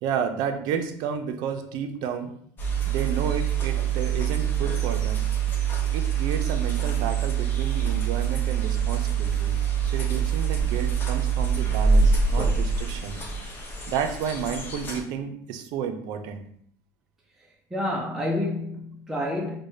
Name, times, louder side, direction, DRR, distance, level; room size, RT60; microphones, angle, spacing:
voice 1, 0.0-2.3 2.8-5.3 5.9-9.6 9.9-13.2 13.9-16.4, right 7 dB, 60° right, 0.5 m, -31 dB
sound 1, 2.6-15.0, right 6 dB, 25° left, 0.7 m, -25 dB
voice 2, 17.7-19.6, left 1 dB, 5° right, 0.4 m, -28 dB
4.7 x 2.2 x 2.6 m
cardioid pair, 135°, 8 cm